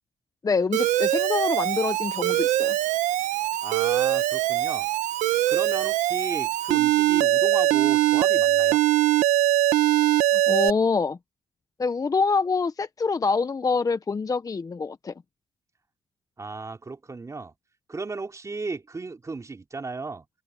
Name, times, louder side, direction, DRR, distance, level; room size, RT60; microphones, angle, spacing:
voice 1, 0.4-2.8 10.5-11.2 11.8-15.1, left 4 dB, 30° left, 1.0 m, -25 dB
Alarm, 0.7-10.7, right 14 dB, 90° right, 0.9 m, -22 dB
voice 2, 3.6-4.9 5.5-8.8 16.4-17.5 17.9-20.2, right 3 dB, 25° right, 3.2 m, -34 dB
open air
cardioid pair, 95°, 12 cm